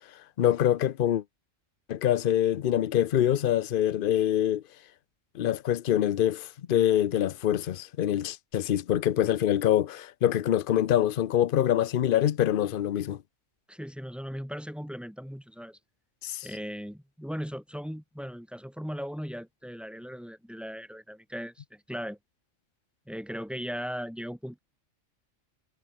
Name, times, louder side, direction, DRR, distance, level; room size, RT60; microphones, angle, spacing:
voice 1, 0.4-1.2 1.9-4.6 5.3-13.2 16.2-16.5, left 11 dB, 50° left, 0.7 m, -25 dB
voice 2, 13.7-15.8 16.4-22.2 23.1-24.6, equal, ahead, 6.2 m, -38 dB
omnidirectional pair, 1.3 m